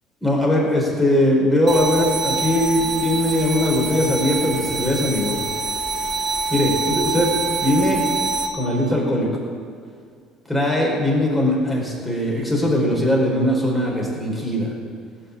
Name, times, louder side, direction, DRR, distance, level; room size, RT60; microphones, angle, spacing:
voice 1, 0.2-5.4 6.5-7.3 7.6-8.0 8.5-9.3 10.5-14.7, left 1 dB, 5° left, -3 dB, 4.2 m, -20 dB
sound 1, 1.7-8.5, right 4 dB, 20° right, 1.7 m, -25 dB
17.5 x 6.2 x 8.4 m, 2.1 s
cardioid pair, 125°, 0 cm